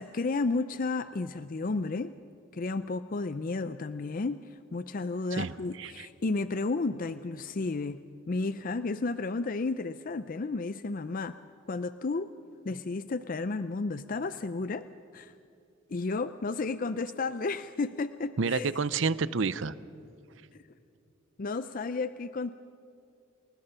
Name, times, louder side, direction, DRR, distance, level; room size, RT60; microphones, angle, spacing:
voice 1, 0.0-2.1 2.5-8.0 8.3-11.4 11.7-12.3 12.6-14.9 15.1-15.3 15.9-18.7 20.5-20.6 21.4-22.5, left 3 dB, 45° left, 12 dB, 0.5 m, -32 dB
voice 2, 5.4-6.1 18.4-19.7, right 4 dB, 65° right, 17 dB, 0.7 m, -29 dB
28.0 x 20.5 x 5.8 m, 2.7 s
head